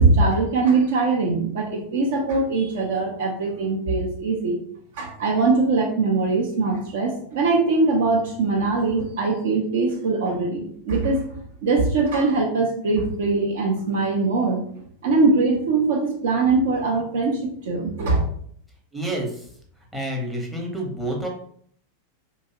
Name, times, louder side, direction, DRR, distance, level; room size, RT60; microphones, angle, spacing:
voice 1, 0.0-4.6 4.9-11.2 11.6-14.6 15.0-18.3, right 3 dB, 55° right, 0 dB, 0.6 m, -21 dB
voice 2, 18.9-19.4 19.9-21.3, right 1 dB, 5° right, -1 dB, 0.7 m, -28 dB
2.7 x 2.3 x 2.8 m, 0.62 s
figure-of-eight pair, 90°, 0 cm